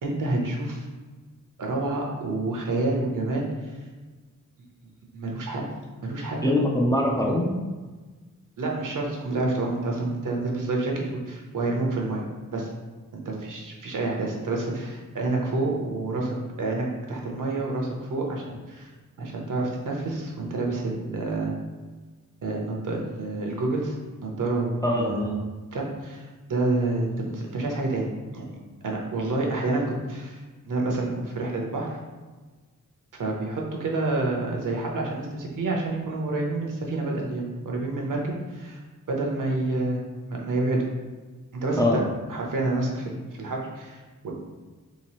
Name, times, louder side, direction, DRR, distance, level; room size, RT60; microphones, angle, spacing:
voice 1, 0.0-0.8 1.6-3.7 5.1-5.7 6.0-6.6 8.6-12.2 12.5-12.7 13.1-18.9 19.2-21.5 22.4-25.2 25.7-28.0 28.3-28.5 28.8-32.0 33.1-38.8 39.1-40.0 40.3-40.9 41.5-42.0 42.3-44.3, right 2 dB, 75° right, 0 dB, 0.8 m, -28 dB
voice 2, 6.4-7.5 24.8-25.4 41.8-42.1, left 1 dB, 10° left, -1 dB, 0.3 m, -23 dB
3.3 x 3.0 x 2.9 m, 1.3 s
wide cardioid pair, 150°, 32 cm